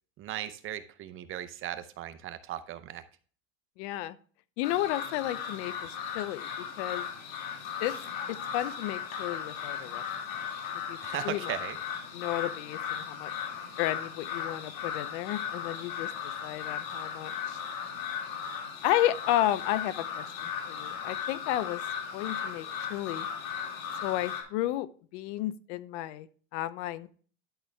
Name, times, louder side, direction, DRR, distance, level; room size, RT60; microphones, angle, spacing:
voice 1, 0.2-3.0 11.0-11.8, right 12 dB, 30° right, 12 dB, 0.7 m, -37 dB
voice 2, 3.8-4.1 4.6-5.7 6.1-6.5 6.8-7.0 7.8-7.9 8.3-10.0 10.9-11.0 11.2-11.5 12.1-13.3 13.8-16.1 16.4-17.6 18.8-20.3 20.6-21.8 22.1-23.3 24.0-24.9 25.1-26.3 26.5-27.1, left 14 dB, 55° left, 16 dB, 0.7 m, -32 dB
sound 1, 4.6-24.4, left 7 dB, 90° left, 2.8 m, -37 dB
11.5 x 6.0 x 3.3 m, 0.43 s
supercardioid pair, 135°, 39 cm